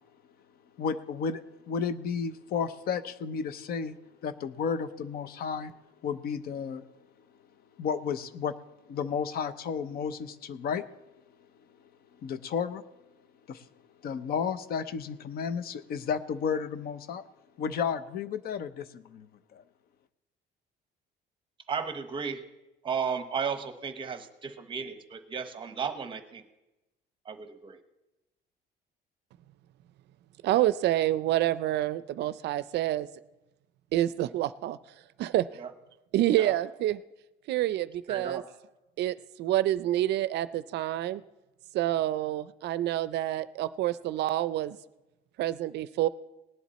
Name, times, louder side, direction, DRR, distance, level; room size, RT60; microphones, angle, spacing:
voice 1, 0.8-4.0 4.2-5.7 6.0-6.8 7.8-8.6 8.9-10.8 12.2-12.8 13.5-13.6 14.0-17.2 17.6-19.3 19.5-19.6, left 6 dB, 55° left, 13 dB, 0.7 m, -32 dB
voice 2, 21.7-22.4 22.8-26.4 27.2-27.8 35.6-35.7 36.4-36.5 38.1-38.4, right 6 dB, 25° right, 9 dB, 1.0 m, -34 dB
voice 3, 30.4-33.1 33.9-34.8 35.2-35.5 36.1-37.0 37.5-38.4 39.0-41.2 41.7-44.8 45.4-46.1, right 14 dB, 65° right, 16 dB, 0.4 m, -27 dB
18.5 x 10.5 x 4.1 m, 0.99 s
cardioid pair, 165°, 19 cm